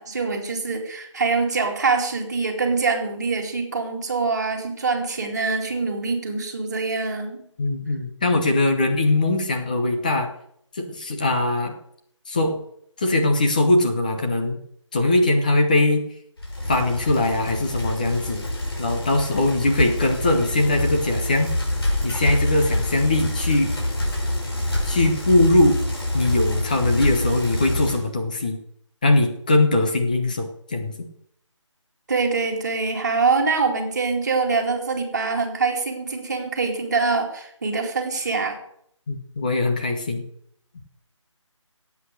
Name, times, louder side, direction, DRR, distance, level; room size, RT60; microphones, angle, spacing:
voice 1, 0.0-7.4 32.1-38.6, right 4 dB, 35° right, 2 dB, 2.4 m, -24 dB
voice 2, 7.6-10.3 10.7-11.8 12.3-12.6 13.0-14.6 14.9-16.1 16.7-18.5 18.8-21.5 22.0-23.7 24.9-25.8 26.1-28.6 29.0-31.1 39.1-40.2, left 2 dB, 15° left, 4 dB, 0.9 m, -21 dB
Bicycle, 16.4-28.1, left 1 dB, 50° left, 5.0 m, -26 dB
16.0 x 8.4 x 6.5 m, 0.70 s
figure-of-eight pair, 175°, 16 cm